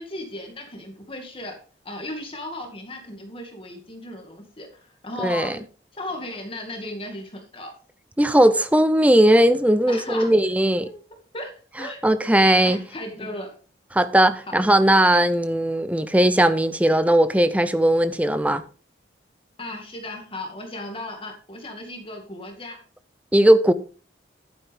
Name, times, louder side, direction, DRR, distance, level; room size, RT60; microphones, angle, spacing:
voice 1, 0.0-1.6 1.8-5.6 5.9-7.7 9.9-10.3 10.8-10.9 11.3-11.5 11.8-12.0 12.6-13.5 14.5-14.6 19.6-22.8, left 1 dB, 30° left, 2.1 m, -36 dB
voice 2, 5.2-5.5 8.2-10.9 12.0-12.8 13.9-18.6 23.3-23.7, right 1 dB, 10° right, 0.6 m, -18 dB
11.5 x 9.4 x 3.6 m
head